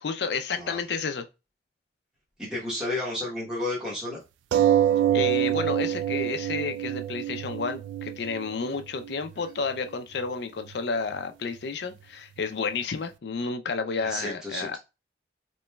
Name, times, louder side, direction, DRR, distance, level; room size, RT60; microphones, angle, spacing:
voice 1, 0.0-1.3 5.1-14.8, left 4 dB, 65° left, 0.5 m, -31 dB
voice 2, 2.4-4.2 14.0-14.8, left 2 dB, 5° right, 1.0 m, -32 dB
sound 1, 4.5-9.5 10.3-10.4 10.7-10.8, right 11 dB, 90° right, 0.3 m, -26 dB
4.1 x 3.0 x 2.2 m
head